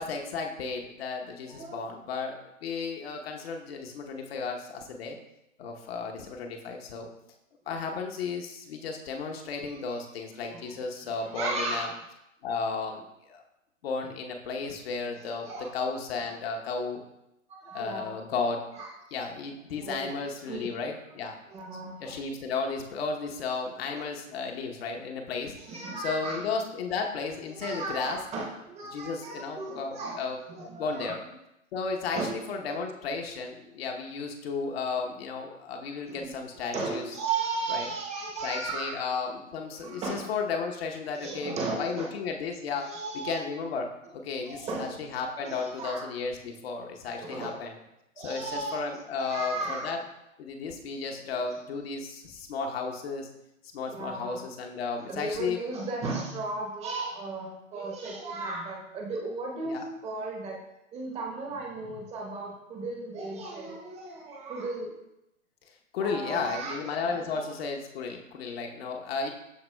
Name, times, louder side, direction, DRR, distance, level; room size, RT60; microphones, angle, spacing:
voice 1, 0.0-5.2 5.6-7.1 7.7-11.9 12.4-13.4 13.8-15.5 15.7-17.0 17.7-18.6 19.1-21.4 22.0-25.6 26.0-28.2 28.9-31.2 31.7-37.0 37.7-37.9 38.4-42.9 43.2-43.9 44.1-47.7 48.2-50.0 50.4-53.3 53.7-55.6 59.6-59.8 65.9-69.3, left 4 dB, 50° left, 2 dB, 0.9 m, -34 dB
voice 2, 1.4-1.9 10.5-10.6 11.3-11.9 15.2-15.7 17.5-18.1 18.7-18.9 19.8-20.1 20.5-20.7 21.5-22.1 23.9-24.0 25.6-26.4 27.5-30.2 30.5-31.2 32.1-32.4 32.7-32.8 36.1-36.3 36.7-39.0 39.7-40.3 41.2-42.1 42.8-43.4 44.5-44.9 45.5-46.1 47.2-47.6 48.2-48.9 49.2-50.0 51.1-51.2 53.9-54.4 55.1-60.6 60.9-64.9 66.0-67.5, right 3 dB, 15° right, 0 dB, 0.8 m, -35 dB
12.5 x 4.2 x 2.2 m, 0.88 s
figure-of-eight pair, 120°, 39 cm